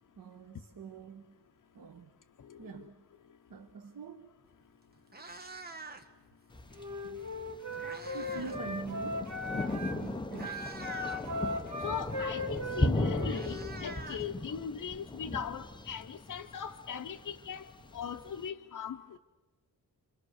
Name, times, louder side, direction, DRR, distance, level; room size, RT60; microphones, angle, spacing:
voice 1, 0.2-1.3 1.7-2.1 2.6-2.9 3.5-4.4 7.0-7.2 7.8-10.7, right 6 dB, 75° right, 1.4 m, -45 dB
Meow, 4.5-4.6 5.0-6.2 7.3-8.6 8.9-9.2 9.9-10.0 10.3-11.3 12.6-12.7 12.9-14.8, right 3 dB, 25° right, 1.3 m, -46 dB
Thunder, 6.5-18.5, left 1 dB, 15° left, 0.7 m, -37 dB
Wind instrument woodwind instrument, 6.7-10.0 10.4-13.8, left 1 dB, 50° right, 2.7 m, -38 dB
voice 2, 11.8-17.7 17.9-19.2, left 7 dB, 60° left, 0.9 m, -39 dB
29.5 x 25.5 x 6.5 m
wide cardioid pair, 175°, 35 cm